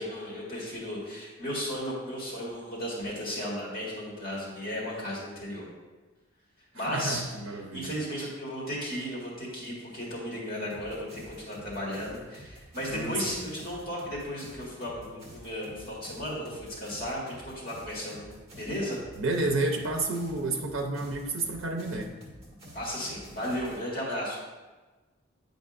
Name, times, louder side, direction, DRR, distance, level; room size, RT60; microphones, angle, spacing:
voice 1, 0.0-5.7 6.7-7.2 7.7-18.3 18.6-19.0 22.7-24.4, equal, 45° left, -5 dB, 1.8 m, -35 dB
voice 2, 6.7-7.9 12.9-13.4 19.2-22.1, right 2 dB, 75° right, 2 dB, 0.7 m, -30 dB
sound 1, 10.7-23.8, equal, 30° right, 1.6 m, -49 dB
9.4 x 5.1 x 2.5 m, 1.2 s
head